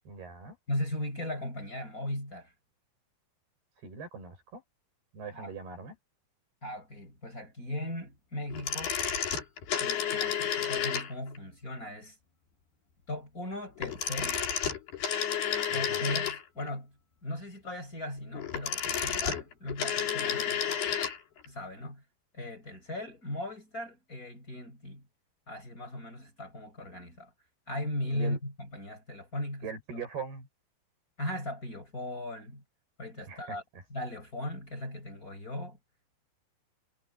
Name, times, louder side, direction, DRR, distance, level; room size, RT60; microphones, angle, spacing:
voice 1, 0.1-0.6 3.8-4.6 5.1-6.0 15.7-16.1 28.1-28.4 29.6-30.5 33.3-33.8, right 5 dB, 70° right, 9.1 m, -41 dB
voice 2, 0.7-2.5 5.3-5.5 6.6-9.0 9.8-12.2 13.1-14.4 15.7-16.9 17.2-20.8 21.4-22.0 22.3-25.0 25.5-27.3 27.7-29.7 31.2-32.6 33.0-33.6 33.9-35.8, left 1 dB, 20° left, 6.5 m, -38 dB
sound 1, 8.5-11.4 13.8-16.7 18.3-21.2 21.4-21.5, left 8 dB, 70° left, 5.8 m, -31 dB
omnidirectional pair, 4.8 m